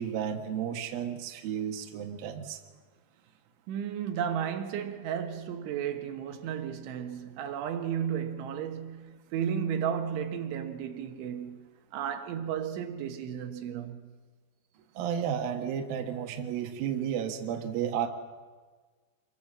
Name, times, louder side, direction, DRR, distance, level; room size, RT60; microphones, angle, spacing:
voice 1, 0.0-2.6 14.9-18.1, right 8 dB, 65° right, 2.8 m, -32 dB
voice 2, 3.7-14.1, right 8 dB, 85° right, 3.9 m, -34 dB
26.5 x 23.0 x 7.4 m
omnidirectional pair, 5.3 m